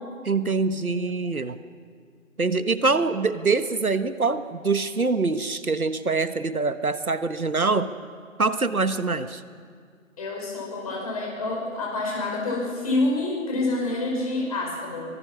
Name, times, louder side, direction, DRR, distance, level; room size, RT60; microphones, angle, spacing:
voice 1, 0.2-1.6 2.4-7.9 8.4-9.4, right 3 dB, 80° right, 11 dB, 1.4 m, -24 dB
voice 2, 10.2-15.1, left 2 dB, 25° left, -2 dB, 5.5 m, -27 dB
24.5 x 21.0 x 6.1 m, 2.1 s
figure-of-eight pair, 160°, 42 cm